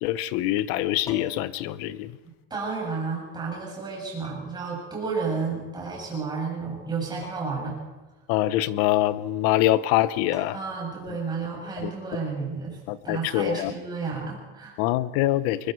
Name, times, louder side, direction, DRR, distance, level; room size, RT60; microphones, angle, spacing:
voice 1, 0.0-2.1 8.3-10.6 11.8-11.9 12.9-13.7 14.8-15.7, left 14 dB, 50° left, 16 dB, 0.9 m, -24 dB
sound 1, 1.0-1.6 2.9-3.0 4.2-4.7 7.2-7.7 8.0-8.1 9.9-10.0 10.3-10.9 12.9-13.1, equal, 10° left, 2.0 m, -46 dB
voice 2, 2.5-7.8 10.5-12.8 13.0-14.8, right 4 dB, 15° right, -3 dB, 7.9 m, -31 dB
24.0 x 22.5 x 4.8 m, 1.2 s
supercardioid pair, 155°, 31 cm